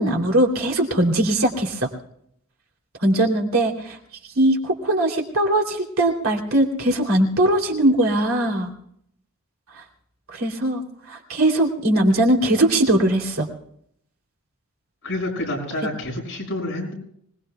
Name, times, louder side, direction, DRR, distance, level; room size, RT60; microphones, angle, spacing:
voice 1, 0.0-1.9 3.0-4.0 4.3-8.7 10.3-13.5, right 1 dB, 75° right, 1 dB, 3.0 m, -20 dB
voice 2, 15.0-16.9, left 1 dB, 55° left, 0 dB, 5.9 m, -28 dB
25.5 x 20.0 x 2.3 m, 0.70 s
head